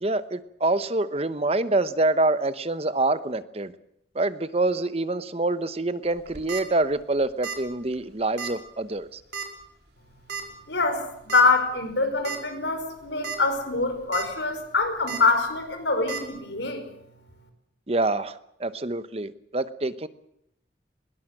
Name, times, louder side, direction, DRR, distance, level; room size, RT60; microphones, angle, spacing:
voice 1, 0.0-3.7 4.1-9.2 17.9-20.1, right 2 dB, 35° right, 13 dB, 0.9 m, -26 dB
sound 1, 6.2-6.6 7.4-7.7 7.9-8.0 8.4-8.5 9.3-9.6 10.3-10.4 11.3-11.4 11.9-12.0 12.2-12.4 13.0-13.4 13.8-14.2 15.1-15.2 16.1-16.2, right 6 dB, 65° right, 4.4 m, -33 dB
voice 2, 10.7-16.8, left 3 dB, 80° left, 6 dB, 5.4 m, -24 dB
20.5 x 18.5 x 7.8 m, 0.77 s
head